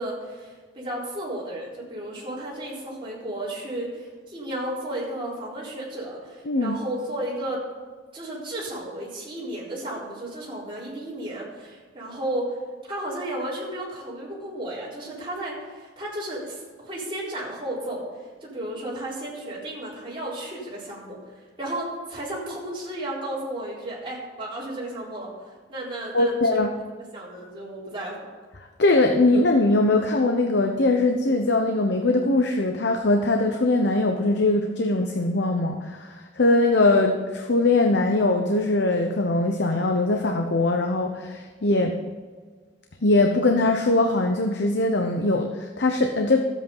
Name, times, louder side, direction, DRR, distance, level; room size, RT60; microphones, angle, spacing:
voice 1, 0.0-7.6 8.1-18.0 18.4-21.2 21.6-26.6 27.1-28.2, right 1 dB, 30° right, -6 dB, 4.0 m, -33 dB
voice 2, 6.5-6.8 26.1-26.7 28.8-42.0 43.0-46.4, left 2 dB, 65° left, 3 dB, 0.8 m, -21 dB
12.5 x 8.4 x 5.5 m, 1.5 s
head